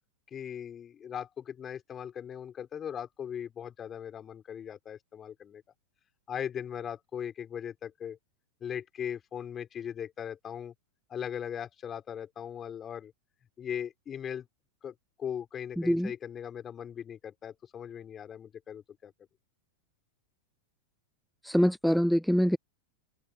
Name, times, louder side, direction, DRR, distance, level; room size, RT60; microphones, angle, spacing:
voice 1, 0.3-5.6 6.3-8.2 8.6-10.7 11.1-13.1 13.6-14.5 14.8-19.1, left 8 dB, 25° left, 6.7 m, -39 dB
voice 2, 21.4-22.6, equal, ahead, 0.6 m, -24 dB
open air
figure-of-eight pair, 90°, 0 cm